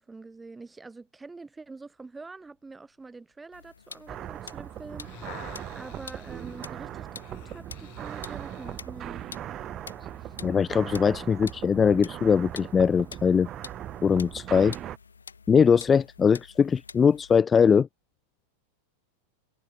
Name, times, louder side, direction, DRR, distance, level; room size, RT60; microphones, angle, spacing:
voice 1, 0.0-9.3 10.2-10.3, right 3 dB, 10° right, 8.0 m, -45 dB
sound 1, 3.5-17.4, left 5 dB, 75° left, 3.8 m, -48 dB
sound 2, 4.1-15.0, right 12 dB, 30° right, 4.0 m, -39 dB
sound 3, 4.8-8.9 9.5-9.6, left 32 dB, 45° left, 7.5 m, -50 dB
voice 2, 10.4-13.5 14.0-14.7 15.5-17.9, left 6 dB, 20° left, 0.5 m, -21 dB
figure-of-eight pair, 90°, 0 cm